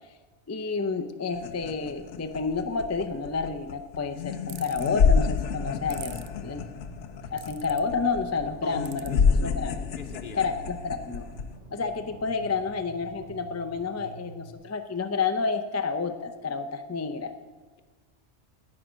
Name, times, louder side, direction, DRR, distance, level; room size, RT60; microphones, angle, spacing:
voice 1, 0.5-6.1 6.4-6.6 7.3-9.1 9.4-9.8 10.4-11.3 11.7-17.3, left 4 dB, 25° left, 7 dB, 0.3 m, -30 dB
sound 1, 1.3-11.6, left 6 dB, 85° left, 1.0 m, -28 dB
sound 2, 4.5-4.9 5.9-6.3 7.4-7.8 8.8-9.1, right 11 dB, 65° right, 0.7 m, -42 dB
sound 3, 5.6-14.6, right 3 dB, 40° right, 3.6 m, -47 dB
voice 2, 9.2-9.6 10.0-10.5, left 5 dB, 55° left, 9 dB, 0.8 m, -42 dB
10.5 x 8.7 x 5.1 m, 1.3 s
omnidirectional pair, 1.2 m